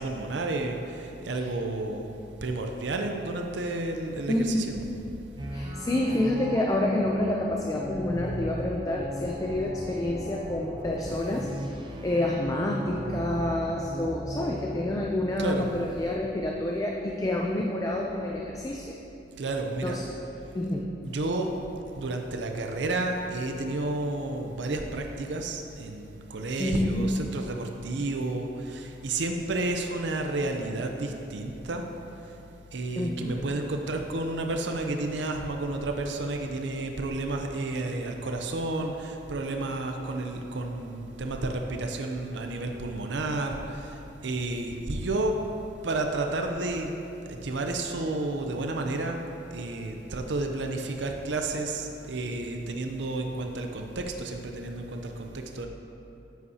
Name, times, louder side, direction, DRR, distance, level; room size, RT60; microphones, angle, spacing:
voice 1, 0.0-2.1 2.4-4.8 15.4-15.7 19.4-20.0 21.0-21.5 22.0-31.8 32.7-44.0 44.2-45.4 45.8-46.9 47.3-49.2 49.5-55.7, right 2 dB, 85° right, 3 dB, 0.6 m, -31 dB
voice 2, 4.3-4.7 5.5-11.5 12.0-19.0 19.8-20.0 20.5-20.9 26.6-27.2 33.0-33.5, left 1 dB, 20° left, 0 dB, 0.4 m, -28 dB
sound 1, 5.4-14.8, equal, 25° right, 0.6 m, -37 dB
9.3 x 8.1 x 2.8 m, 2.9 s
head